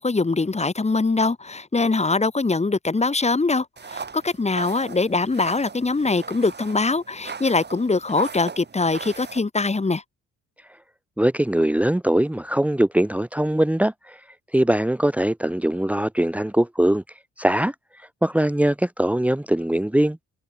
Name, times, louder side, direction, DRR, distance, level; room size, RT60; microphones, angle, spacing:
voice 1, 0.0-3.6 3.9-10.0, left 3 dB, 20° left, 2.9 m, -22 dB
sound 1, 3.8-9.4, right 5 dB, 35° right, 4.9 m, -38 dB
voice 2, 11.2-14.2 14.5-17.0 17.4-20.2, right 1 dB, 5° right, 1.8 m, -21 dB
cardioid pair, 90°, 30 cm